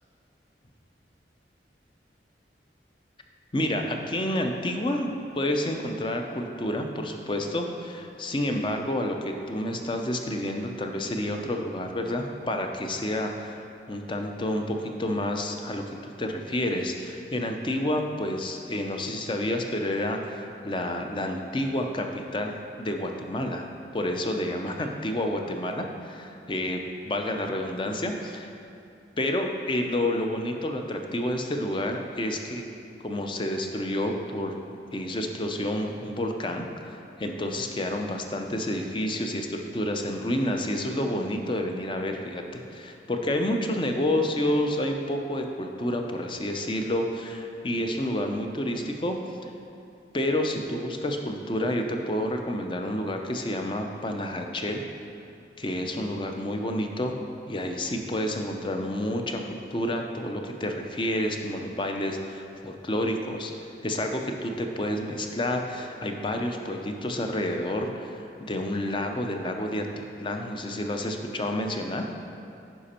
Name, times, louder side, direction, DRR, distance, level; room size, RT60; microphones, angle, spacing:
voice 1, 3.5-5.1 5.3-23.7 23.9-28.5 29.2-32.6 33.0-34.6 34.9-49.2 49.4-49.5 50.1-54.8 55.6-57.1 57.5-72.0, left 1 dB, 25° left, 3 dB, 0.5 m, -29 dB
10.0 x 5.1 x 4.3 m, 2.6 s
head